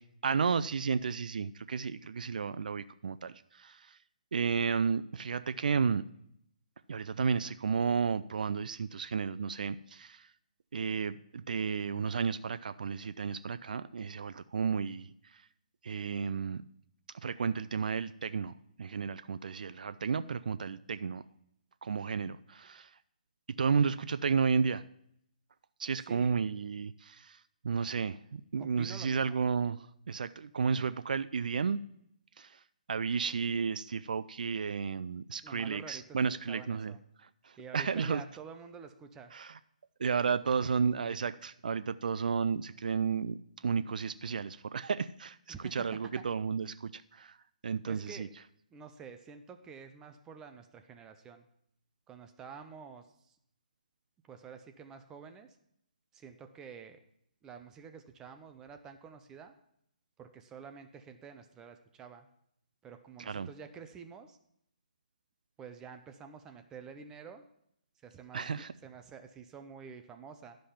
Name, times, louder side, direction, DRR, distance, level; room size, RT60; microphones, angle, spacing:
voice 1, 0.0-4.0 4.3-6.0 6.9-10.3 10.7-15.1 15.8-16.6 17.2-18.5 18.8-21.2 21.8-22.9 23.6-24.8 25.8-27.4 27.6-31.8 32.4-32.5 32.9-36.9 37.4-38.2 39.3-39.5 40.0-43.4 43.6-45.4 45.7-47.4 47.6-48.3 63.2-63.5 68.3-68.7, right 6 dB, 70° right, 13 dB, 0.4 m, -32 dB
voice 2, 26.0-26.3 28.6-29.4 35.4-37.0 37.6-39.3 45.5-45.9 46.2-46.3 47.9-48.3 48.7-51.4 52.1-53.4 54.2-55.6 56.1-57.0 57.4-59.5 60.2-62.3 62.8-64.4 65.6-67.4 68.0-70.6, right 6 dB, 10° right, 7 dB, 0.5 m, -49 dB
11.5 x 5.3 x 5.7 m, 0.73 s
hypercardioid pair, 155°, 5 cm